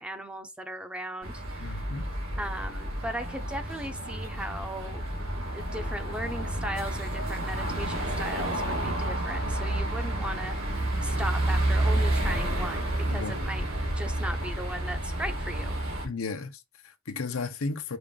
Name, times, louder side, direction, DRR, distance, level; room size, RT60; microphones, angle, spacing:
voice 1, 0.0-1.8 2.4-5.0 5.5-13.6 14.0-15.7, right 1 dB, 5° right, 0.6 m, -37 dB
sound 1, 1.2-16.0, right 1 dB, 80° right, 2.0 m, -30 dB
voice 2, 1.6-2.1 13.1-13.5 16.0-18.0, left 3 dB, 85° left, 0.8 m, -34 dB
5.1 x 2.5 x 3.7 m
head